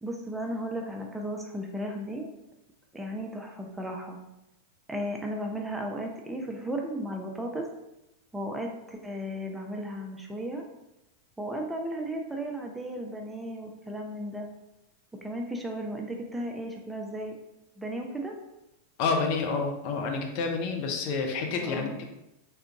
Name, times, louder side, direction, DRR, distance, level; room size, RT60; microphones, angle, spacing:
voice 1, 0.0-2.3 2.9-4.2 4.9-7.7 8.3-10.6 11.4-14.5 15.2-17.4 17.8-18.4 21.2-21.3 21.6-22.0, right 1 dB, 5° right, 1 dB, 0.4 m, -35 dB
voice 2, 19.0-22.1, left 4 dB, 45° left, 3 dB, 0.5 m, -29 dB
3.4 x 2.4 x 2.8 m, 0.90 s
figure-of-eight pair, 90°, 0 cm